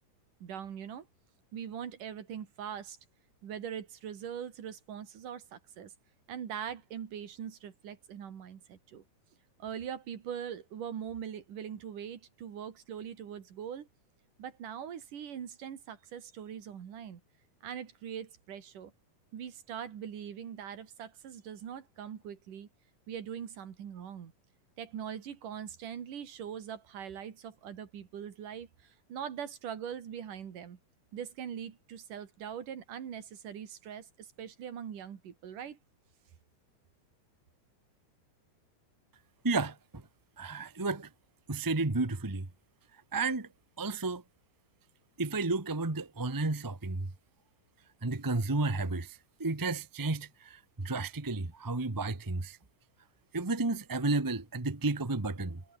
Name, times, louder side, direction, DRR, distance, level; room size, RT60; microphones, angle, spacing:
voice 1, 0.4-1.1 1.5-3.0 3.4-5.9 6.3-9.0 9.6-13.9 14.4-17.2 17.6-18.9 19.3-22.7 23.1-24.3 24.8-30.8 31.1-35.8, right 8 dB, 80° right, 3.9 m, -42 dB
voice 2, 39.4-40.0 40.4-41.1 41.5-42.5 43.1-43.5 43.8-44.2 45.2-47.1 48.0-52.6 53.3-55.6, right 3 dB, 30° right, 0.3 m, -32 dB
omnidirectional pair, 3.7 m